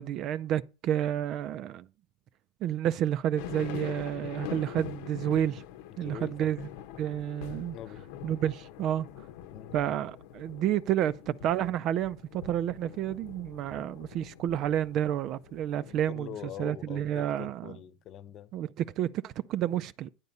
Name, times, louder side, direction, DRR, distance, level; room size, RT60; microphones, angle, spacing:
voice 1, 0.0-1.9 2.6-5.6 6.0-6.6 7.0-7.8 8.2-9.1 9.7-16.3 16.6-17.6 18.5-20.1, right 11 dB, 45° right, 0.4 m, -30 dB
sound 1, 3.4-16.1, left 10 dB, 75° left, 1.1 m, -44 dB
voice 2, 6.0-6.5 7.7-8.0 9.5-9.8 16.1-18.5, left 10 dB, 40° left, 0.7 m, -43 dB
10.5 x 8.2 x 5.4 m
supercardioid pair, 140°, 0 cm